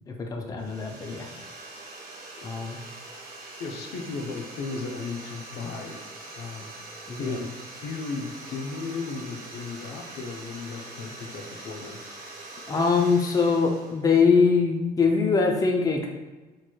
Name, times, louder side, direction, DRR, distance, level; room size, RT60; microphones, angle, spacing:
voice 1, 0.2-1.3 2.4-2.8 7.1-7.4 12.7-16.1, left 5 dB, 20° left, 2 dB, 0.5 m, -22 dB
sound 1, 0.6-14.0, right 2 dB, 60° right, 1.3 m, -43 dB
voice 2, 3.6-6.7 7.2-7.5 7.8-12.0, left 4 dB, 70° left, 2 dB, 0.6 m, -35 dB
4.3 x 3.0 x 2.3 m, 1.2 s
cardioid pair, 110°, 17 cm